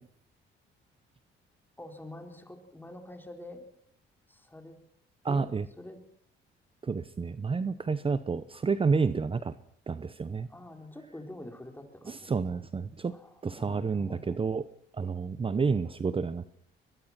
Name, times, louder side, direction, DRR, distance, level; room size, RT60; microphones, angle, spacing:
voice 1, 1.8-3.6 4.3-4.8 5.2-5.5 5.8-6.0 10.5-12.6 13.1-14.4, left 1 dB, 10° left, 4 dB, 4.1 m, -46 dB
voice 2, 5.2-5.7 6.8-9.5 9.9-10.5 12.1-13.1 13.4-14.6 14.9-16.5, right 5 dB, 25° right, 14 dB, 0.8 m, -30 dB
22.5 x 22.0 x 6.0 m, 0.66 s
cardioid pair, 90°, 20 cm